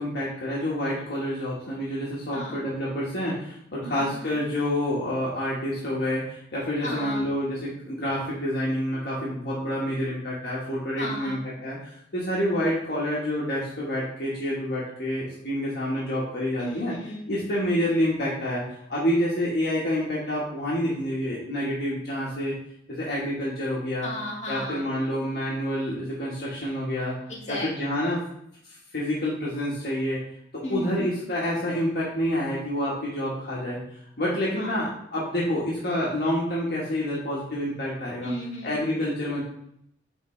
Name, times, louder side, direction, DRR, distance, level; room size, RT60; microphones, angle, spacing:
voice 1, 0.0-16.9 17.3-22.5 22.9-24.1 24.5-27.2 27.5-28.2 28.6-30.2 30.5-33.8 34.2-38.3 38.6-39.4, equal, 60° left, -6 dB, 1.5 m, -28 dB
voice 2, 2.3-2.6 3.8-4.4 6.8-7.3 11.0-11.5 16.6-17.3 24.0-24.8 27.3-27.7 30.6-31.3 34.6-34.9 38.2-38.9, equal, 40° left, -5 dB, 2.0 m, -35 dB
9.3 x 3.7 x 3.2 m, 0.74 s
head